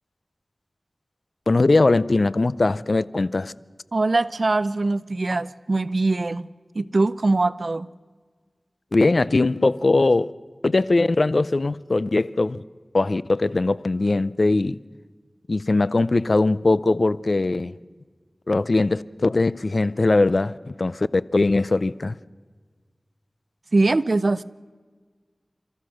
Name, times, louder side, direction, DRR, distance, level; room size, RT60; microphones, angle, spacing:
voice 1, 1.5-3.5 8.9-10.3 10.6-12.6 12.9-14.8 15.5-17.7 18.5-22.2, left 2 dB, 65° left, 0.5 m, -20 dB
voice 2, 3.9-6.5 6.7-7.9 23.7-24.4, right 2 dB, 65° right, 0.5 m, -22 dB
30.0 x 14.0 x 6.4 m
wide cardioid pair, 50°, 0 cm